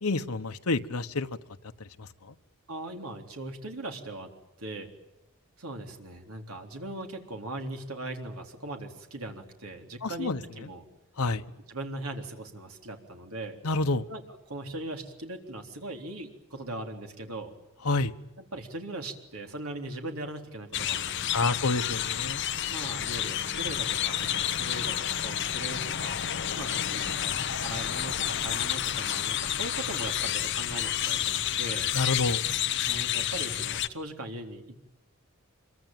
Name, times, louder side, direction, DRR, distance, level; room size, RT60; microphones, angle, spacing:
voice 1, 0.0-1.3 2.0-2.3 10.0-10.4 11.2-11.4 13.6-14.0 17.8-18.1 21.3-22.4 31.9-32.4, left 3 dB, 90° left, 1.2 m, -28 dB
voice 2, 2.7-4.3 4.6-4.9 5.6-10.8 11.7-13.6 14.1-17.5 18.4-21.6 22.7-26.2 26.5-31.9 32.8-34.8, right 1 dB, 80° right, 3.7 m, -39 dB
sound 1, 20.7-33.9, left 10 dB, 55° left, 1.0 m, -30 dB
26.0 x 23.5 x 9.2 m
head